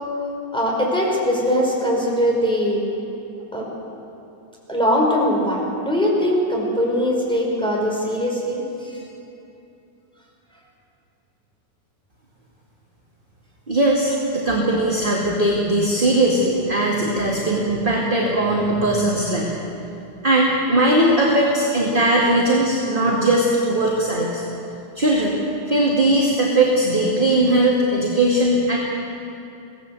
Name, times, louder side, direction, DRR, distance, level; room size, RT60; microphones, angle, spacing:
voice 1, 0.5-2.8 3.5-3.7 4.7-9.0, equal, ahead, -3 dB, 5.2 m, -21 dB
voice 2, 13.7-19.5 20.2-24.4 24.9-25.4 25.7-28.8, right 1 dB, 20° right, -4 dB, 2.1 m, -19 dB
23.5 x 18.0 x 8.0 m, 2.7 s
omnidirectional pair, 3.5 m